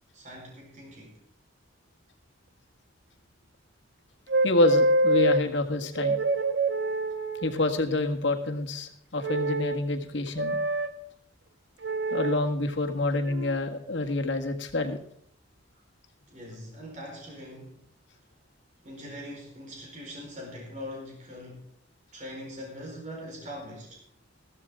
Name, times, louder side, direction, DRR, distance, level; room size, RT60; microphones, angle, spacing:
voice 1, 0.1-1.2 16.3-17.8 18.8-21.6 22.1-24.0, equal, 40° right, -1 dB, 4.4 m, -42 dB
sound 1, 4.3-5.4 6.0-7.7 9.2-9.8 10.4-10.9 11.8-12.4 13.3-13.6, right 1 dB, 70° right, 0.9 m, -26 dB
voice 2, 4.4-6.2 7.4-10.6 12.1-15.0, left 2 dB, 85° left, 4 dB, 1.7 m, -27 dB
15.0 x 13.0 x 3.7 m, 0.68 s
head